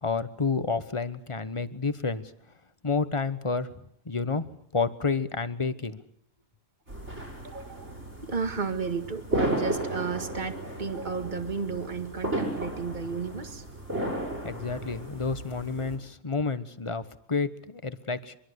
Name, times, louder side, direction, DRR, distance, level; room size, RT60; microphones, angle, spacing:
voice 1, 0.0-2.2 2.8-6.0 14.4-18.4, left 4 dB, 25° left, 13 dB, 1.2 m, -30 dB
sound 1, 6.9-16.0, right 1 dB, 65° right, 7.4 m, -34 dB
voice 2, 7.4-13.6, right 5 dB, 40° right, 8 dB, 2.1 m, -33 dB
24.5 x 23.5 x 8.2 m, 0.63 s
omnidirectional pair, 1.3 m